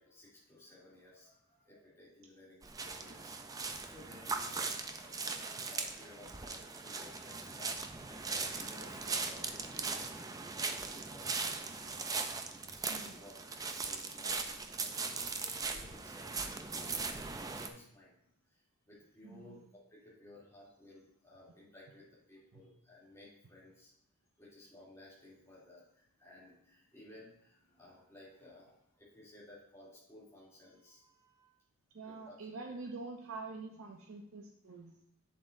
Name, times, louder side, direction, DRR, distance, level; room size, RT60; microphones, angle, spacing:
voice 1, 0.0-7.7 8.1-12.0 12.7-16.3 16.6-17.0 17.3-18.2 18.9-19.6 19.9-23.9 24.4-25.8 26.2-31.5 32.0-32.4, left 1 dB, 15° left, -8 dB, 2.7 m, -57 dB
sound 1, 2.6-17.7, right 4 dB, 15° right, 0.4 m, -39 dB
voice 2, 19.2-19.6 22.5-22.6 31.9-34.9, right 3 dB, 65° right, 1 dB, 0.6 m, -46 dB
8.3 x 7.3 x 2.6 m, 0.75 s
head